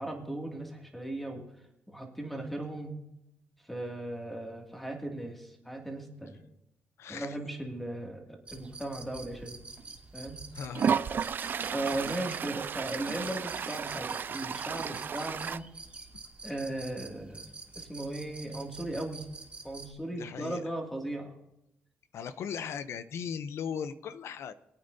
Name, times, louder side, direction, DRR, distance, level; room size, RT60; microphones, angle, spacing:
voice 1, 0.0-1.4 1.9-2.9 3.6-6.4 7.1-8.2 8.5-9.6 10.1-10.4 11.7-15.7 16.4-17.4 17.8-19.2 19.6-21.3, right 1 dB, 5° left, 1 dB, 2.3 m, -37 dB
voice 2, 7.0-7.4 10.5-10.9 20.1-20.7 22.1-24.5, left 7 dB, 70° left, 13 dB, 0.6 m, -38 dB
sound 1, 8.5-19.9, right 3 dB, 25° right, 2.6 m, -47 dB
Toilet flush, 9.8-9.9 10.7-15.6, right 7 dB, 45° right, 0.4 m, -33 dB
22.5 x 8.8 x 2.7 m, 0.86 s
cardioid pair, 105°, 5 cm